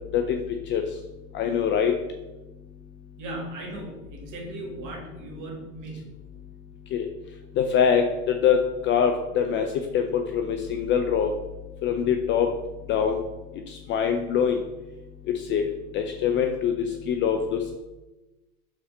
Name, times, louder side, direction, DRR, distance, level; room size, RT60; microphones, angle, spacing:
voice 1, 1.3-1.9 6.9-7.1 7.6-8.6 8.8-9.6 9.9-11.3 11.8-12.5 12.9-13.2 13.9-14.6 15.5-15.7 15.9-17.8, left 7 dB, 25° left, 5 dB, 0.4 m, -23 dB
voice 2, 3.2-6.0, right 1 dB, 40° right, 0 dB, 1.9 m, -37 dB
5.1 x 4.1 x 5.3 m, 1.1 s
hypercardioid pair, 90°, 45 cm